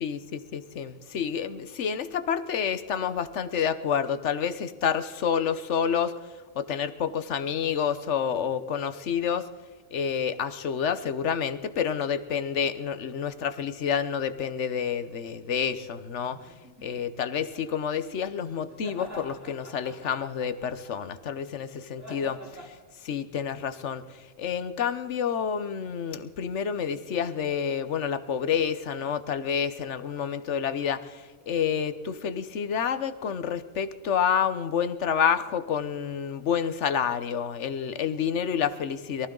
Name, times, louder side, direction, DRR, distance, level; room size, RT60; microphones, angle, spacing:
voice 1, 0.0-6.1 6.5-9.5 9.9-16.4 16.8-22.8 23.0-39.3, left 7 dB, 85° left, 12 dB, 1.2 m, -29 dB
sound 1, 16.1-17.9 18.7-21.1 22.0-22.7, equal, 15° right, 3.1 m, -46 dB
23.0 x 14.5 x 3.9 m, 1.4 s
omnidirectional pair, 1.2 m